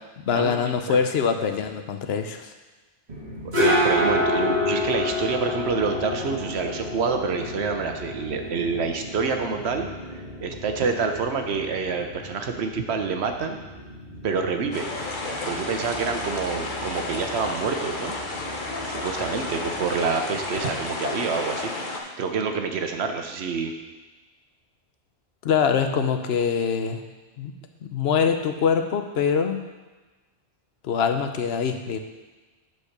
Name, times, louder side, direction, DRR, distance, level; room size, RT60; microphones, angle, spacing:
voice 1, 0.3-2.5 25.4-27.0 27.4-27.5 27.8-29.6 30.8-32.0, left 6 dB, 70° left, 7 dB, 0.9 m, -24 dB
sound 1, 3.1-20.6, left 1 dB, 45° right, 1.7 m, -30 dB
voice 2, 3.6-9.9 10.4-13.6 14.2-14.9 15.4-18.2 18.8-21.7 22.2-23.7, right 5 dB, 75° right, 5 dB, 1.1 m, -27 dB
sound 2, 14.7-22.0, left 2 dB, 50° left, 1.1 m, -31 dB
7.2 x 4.7 x 6.5 m, 1.2 s
omnidirectional pair, 1.1 m